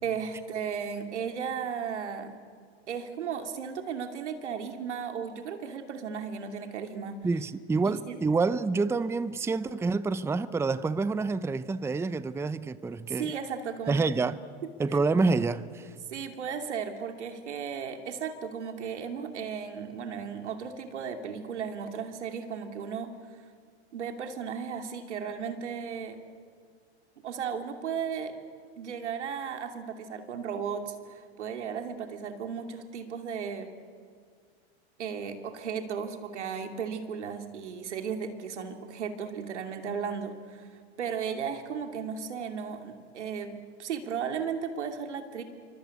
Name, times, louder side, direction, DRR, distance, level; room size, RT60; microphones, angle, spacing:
voice 1, 0.0-2.4 2.9-7.2 7.8-8.2 13.1-14.0 14.9-15.0 16.1-23.1 23.9-26.2 27.2-28.4 28.8-33.7 35.0-45.4, right 7 dB, 90° right, 2.8 m, -35 dB
voice 2, 7.2-13.3 13.9-14.4 14.8-15.9, right 4 dB, 10° right, 0.6 m, -27 dB
28.0 x 25.0 x 8.4 m
hypercardioid pair, 110°, 34 cm